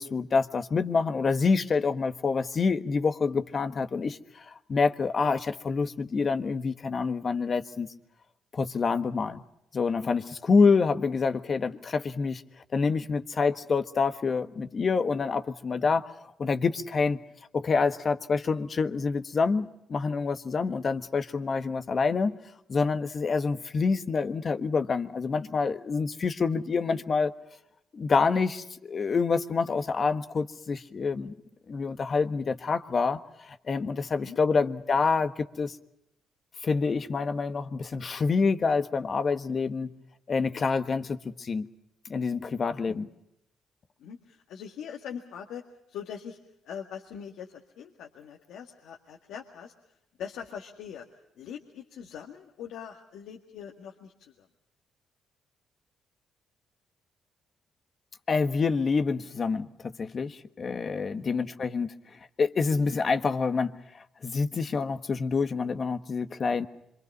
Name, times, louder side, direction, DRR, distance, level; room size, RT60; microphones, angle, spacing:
voice 1, 0.0-7.9 8.5-9.4 9.7-12.4 12.7-16.1 16.4-17.2 17.5-22.4 22.7-27.3 27.9-31.3 31.7-35.8 36.6-39.9 40.3-41.7 42.0-43.1 58.3-66.7, left 4 dB, 40° left, 9 dB, 1.4 m, -27 dB
voice 2, 44.0-46.4 46.6-51.1 51.4-54.5 61.2-61.7, left 8 dB, 85° left, 1 dB, 1.9 m, -42 dB
26.0 x 24.5 x 5.4 m, 0.81 s
cardioid pair, 90°, 0 cm